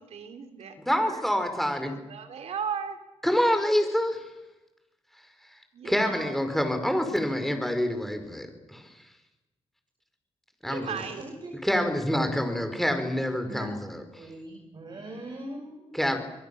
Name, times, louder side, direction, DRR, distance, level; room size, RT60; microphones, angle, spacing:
voice 1, 0.0-1.2 1.8-3.0 5.7-6.4 10.6-11.2, right 7 dB, 75° right, 7 dB, 3.5 m, -37 dB
voice 2, 0.8-2.0 3.2-4.2 5.8-8.8 10.6-11.0 11.6-14.2 15.9-16.2, equal, ahead, 7 dB, 5.0 m, -27 dB
voice 3, 11.0-11.5 12.1-12.3 13.4-13.7 14.2-16.2, right 1 dB, 45° right, 4 dB, 5.8 m, -41 dB
27.5 x 22.5 x 7.1 m, 1.0 s
cardioid pair, 75°, 11 cm